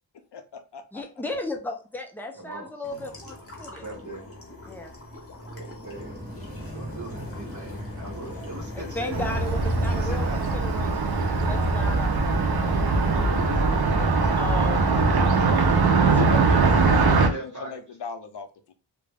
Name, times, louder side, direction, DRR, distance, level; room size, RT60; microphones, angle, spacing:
voice 1, 0.3-1.0 16.1-18.7, left 5 dB, 65° left, 8 dB, 0.5 m, -38 dB
voice 2, 0.9-3.9 4.7-5.0 8.7-12.8 14.4-14.9 15.9-16.6, left 2 dB, 5° left, 2 dB, 0.4 m, -35 dB
voice 3, 2.3-2.7 3.8-4.2 5.5-6.2 6.5-9.2 9.9-10.4 12.8-16.1 16.7-17.8, right 1 dB, 40° right, 0 dB, 1.1 m, -39 dB
sound 1, 2.8-13.3, left 1 dB, 30° left, 0.8 m, -41 dB
sound 2, 5.9-14.4, equal, 20° right, 0.9 m, -40 dB
Car passing by, 9.1-17.3, right 3 dB, 60° right, 0.5 m, -21 dB
2.3 x 2.1 x 3.3 m, 0.33 s
wide cardioid pair, 55°, 44 cm